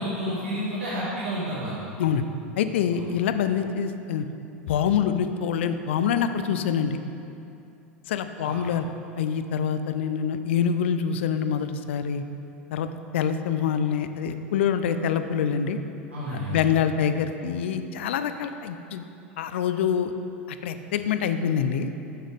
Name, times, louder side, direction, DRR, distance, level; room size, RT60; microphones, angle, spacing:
voice 1, 0.0-1.8 2.9-3.0 8.4-8.6 16.1-16.6, equal, 90° right, -10 dB, 1.3 m, -30 dB
voice 2, 2.6-4.2 4.7-7.0 8.1-8.8 9.2-12.2 12.7-12.9 13.1-15.8 16.5-19.0 19.4-20.1 20.6-21.9, left 8 dB, 70° left, 10 dB, 0.4 m, -25 dB
6.5 x 6.2 x 3.5 m, 2.7 s
hypercardioid pair, 85°, 6 cm